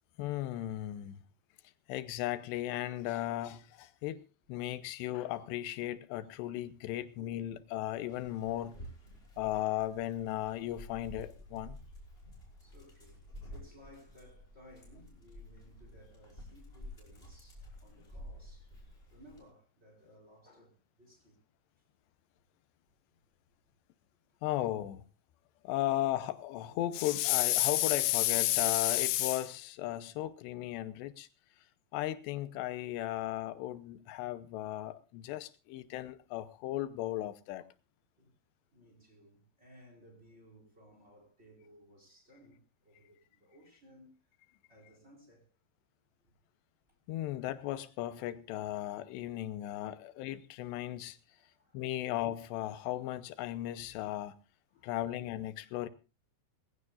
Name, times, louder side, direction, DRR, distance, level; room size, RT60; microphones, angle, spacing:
voice 1, 0.2-1.2 1.9-4.2 4.5-8.8 9.4-11.8 24.4-25.0 25.6-31.3 31.9-37.6 47.1-51.2 51.7-54.4 54.8-55.9, left 14 dB, 85° left, 3.0 m, -34 dB
Dog, 8.1-19.4, equal, 15° left, 5.5 m, -51 dB
voice 2, 12.6-21.4 38.2-38.3 38.7-44.1 44.7-45.5 51.3-51.8 54.7-54.9, equal, 15° right, 4.5 m, -60 dB
21.0 x 16.0 x 2.5 m
omnidirectional pair, 4.8 m